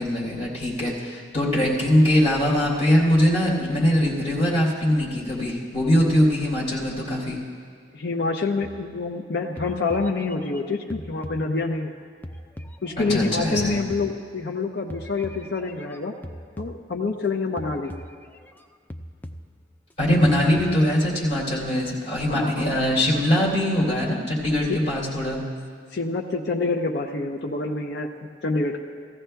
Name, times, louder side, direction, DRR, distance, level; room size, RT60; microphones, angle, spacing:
voice 1, 0.0-7.4 13.0-13.8 20.0-25.4, equal, 35° left, -6 dB, 3.1 m, -22 dB
voice 2, 7.9-11.9 12.8-16.1 16.6-17.9 22.3-22.7 24.7-24.8 25.9-28.1 28.4-28.8, left 3 dB, 60° left, 1 dB, 0.6 m, -27 dB
sound 1, 8.6-9.2 9.6-11.9 12.2-14.6 14.9-17.3 17.6-18.7 18.9-19.9 20.2-21.0, equal, 10° left, 0.3 m, -41 dB
17.0 x 15.0 x 2.3 m, 2.1 s
head